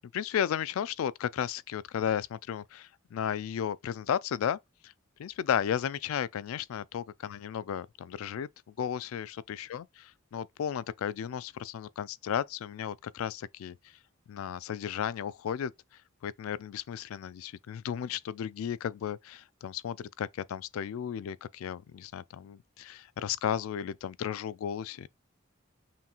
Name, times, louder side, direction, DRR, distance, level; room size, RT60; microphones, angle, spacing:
voice 1, 0.1-4.9 5.2-8.5 8.8-13.8 14.3-15.7 16.2-25.1, left 9 dB, 80° left, 0.3 m, -34 dB
5.7 x 2.9 x 2.3 m
head